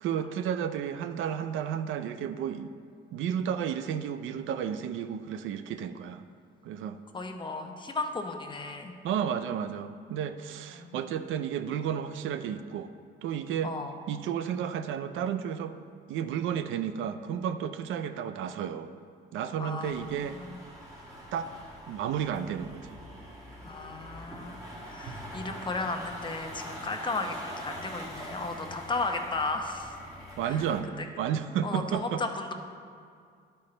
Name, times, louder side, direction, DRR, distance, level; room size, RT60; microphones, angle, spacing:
voice 1, 0.0-2.7 3.1-6.3 6.6-7.0 9.0-12.9 13.2-13.7 14.1-15.8 16.1-19.0 19.3-20.4 21.3-21.5 21.9-23.0 30.4-32.2, right 8 dB, 85° right, 10 dB, 0.5 m, -32 dB
voice 2, 7.1-8.9 10.7-11.0 13.6-13.9 19.6-20.6 23.6-24.6 24.9-30.0 30.4-30.7 31.0-31.1 31.6-32.5, left 3 dB, 25° left, 4 dB, 0.8 m, -35 dB
sound 1, 19.8-30.8, equal, 15° right, 2.0 m, -44 dB
11.5 x 4.3 x 3.9 m, 2.3 s
cardioid pair, 90°, 20 cm